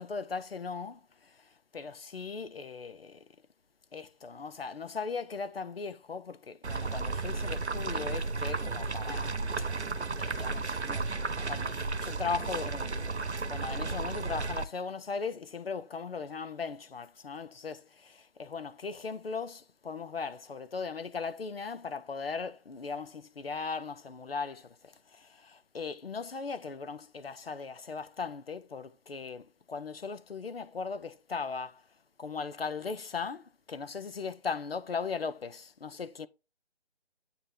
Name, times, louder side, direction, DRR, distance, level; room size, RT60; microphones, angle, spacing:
voice 1, 0.0-3.2 3.9-9.7 10.2-11.1 11.5-31.8 32.2-36.3, left 5 dB, 65° left, 0.9 m, -38 dB
sound 1, 6.6-14.6, right 3 dB, 80° right, 1.0 m, -33 dB
8.8 x 3.2 x 5.4 m
figure-of-eight pair, 150°, 33 cm